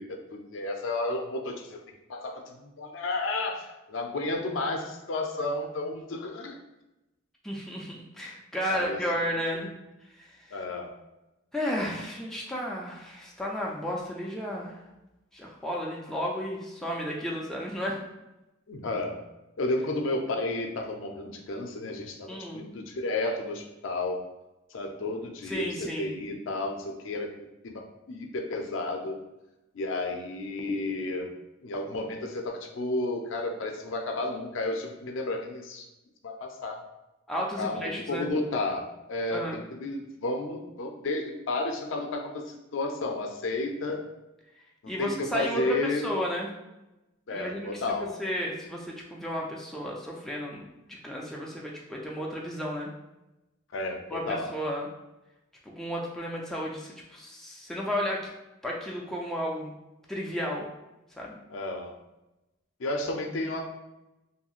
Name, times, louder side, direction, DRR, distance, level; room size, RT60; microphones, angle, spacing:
voice 1, 0.0-1.8 2.1-6.6 8.7-9.0 9.5-9.7 10.5-10.9 18.7-19.2 19.6-24.2 24.7-29.2 29.7-31.3 31.6-35.9 36.2-36.8 37.6-44.0 44.8-46.0 47.3-48.2 53.7-54.5 61.5-61.9 62.8-63.6, left 2 dB, 70° left, 3 dB, 0.4 m, -32 dB
voice 2, 7.4-9.7 10.2-10.6 11.5-14.8 15.3-18.0 22.3-22.6 25.4-26.1 37.3-38.3 39.3-39.6 44.9-46.5 47.3-52.9 54.1-54.9 55.7-58.3 58.6-59.7 60.1-60.7 61.2-61.4, equal, ahead, -3 dB, 0.4 m, -33 dB
2.9 x 2.7 x 2.4 m, 0.97 s
head